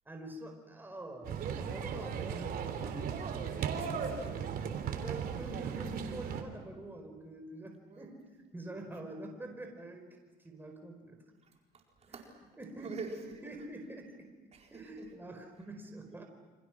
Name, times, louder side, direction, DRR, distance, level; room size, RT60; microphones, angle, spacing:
voice 1, 0.0-3.1 4.8-10.1 10.4-11.2 12.1-12.2 12.6-13.0 13.4-14.3 14.7-16.2, right 1 dB, 10° right, 3 dB, 4.9 m, -46 dB
sound 1, 1.2-6.4, right 7 dB, 60° right, 3.4 m, -37 dB
voice 2, 3.0-4.6 7.9-8.1 11.4-12.3 12.8-13.2 13.4-13.7 14.5-15.1, right 5 dB, 40° right, 1 dB, 4.7 m, -47 dB
29.0 x 26.5 x 6.2 m, 1.4 s
cardioid pair, 110°, 17 cm